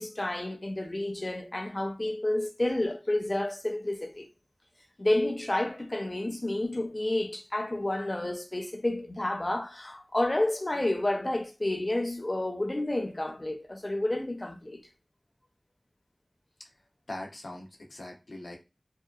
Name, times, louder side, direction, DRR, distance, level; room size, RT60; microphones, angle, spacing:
voice 1, 0.0-4.3 5.0-14.8, left 1 dB, 35° left, 0.6 m, -30 dB
voice 2, 17.1-18.6, left 1 dB, 90° left, 0.7 m, -41 dB
2.8 x 2.3 x 2.3 m
wide cardioid pair, 55°, 0 cm